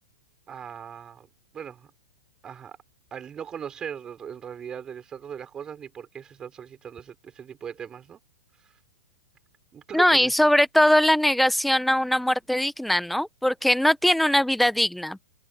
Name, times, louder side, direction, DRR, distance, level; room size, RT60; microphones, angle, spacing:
voice 1, 0.5-1.3 1.5-1.9 2.4-2.8 3.1-8.2 9.7-10.3, right 8 dB, 20° right, 5.9 m, -39 dB
voice 2, 9.9-15.2, left 1 dB, ahead, 1.0 m, -21 dB
hypercardioid pair, 120°, 4 cm